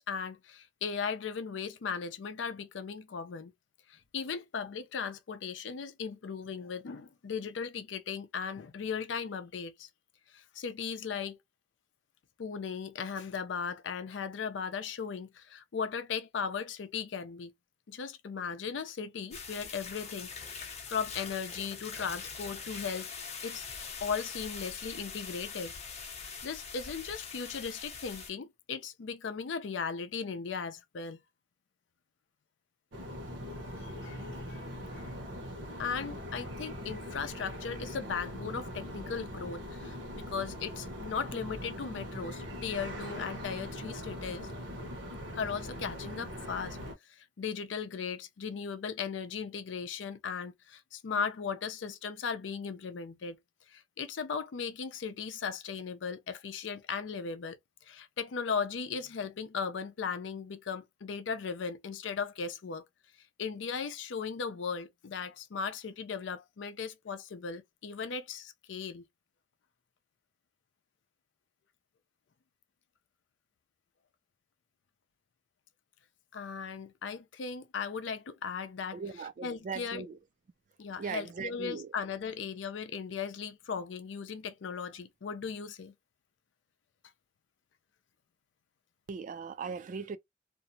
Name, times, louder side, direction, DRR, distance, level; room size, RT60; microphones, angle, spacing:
voice 1, 0.1-3.5 3.9-9.9 10.3-11.4 12.4-17.5 17.9-23.1 23.4-23.7 24.0-25.7 26.2-31.2 33.6-34.6 34.9-35.1 35.8-44.5 45.3-46.8 47.1-53.4 53.7-57.6 57.9-62.8 63.4-69.0 76.3-80.1 80.8-85.9, left 6 dB, 85° left, 0.5 m, -37 dB
sound 1, 19.3-28.3, left 5 dB, 35° left, 0.6 m, -43 dB
sound 2, 32.9-46.9, equal, 80° right, 0.9 m, -41 dB
voice 2, 78.9-80.1 81.0-81.9 89.1-90.2, right 5 dB, 45° right, 0.3 m, -39 dB
2.5 x 2.0 x 2.6 m
head